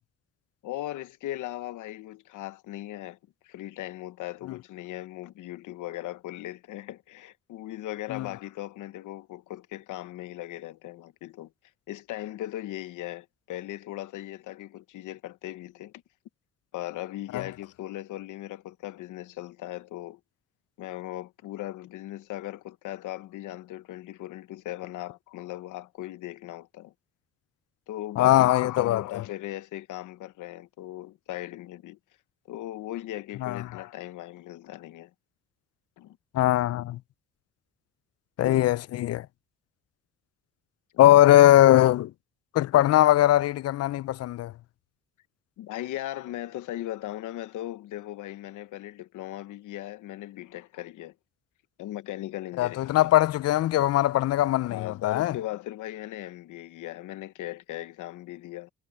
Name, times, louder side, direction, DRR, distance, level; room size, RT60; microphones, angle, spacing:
voice 1, 0.6-3.2 3.4-11.5 11.9-15.9 16.7-20.2 20.8-26.9 27.9-32.0 32.5-35.1 36.0-36.2 41.0-41.2 45.6-51.1 51.8-53.1 54.7-58.7, left 14 dB, 85° left, 0.9 m, -38 dB
voice 2, 28.2-29.0 33.4-33.6 36.3-37.0 38.4-39.3 41.0-42.1 42.5-44.5 52.6-55.4, left 14 dB, 55° left, 0.4 m, -20 dB
cardioid pair, 90°, 30 cm